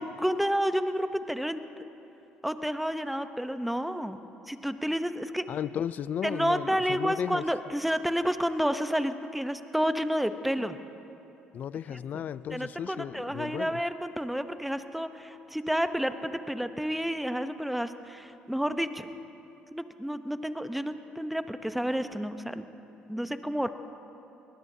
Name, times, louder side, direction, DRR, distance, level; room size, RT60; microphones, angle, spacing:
voice 1, 0.0-1.6 2.4-4.2 4.5-5.5 6.2-10.8 12.5-19.1 19.7-22.7 23.1-23.7, equal, ahead, 10 dB, 0.8 m, -30 dB
voice 2, 5.5-7.5 11.5-13.8, left 9 dB, 55° left, 17 dB, 0.3 m, -34 dB
22.5 x 19.5 x 2.8 m, 3.0 s
supercardioid pair, 75°, 4 cm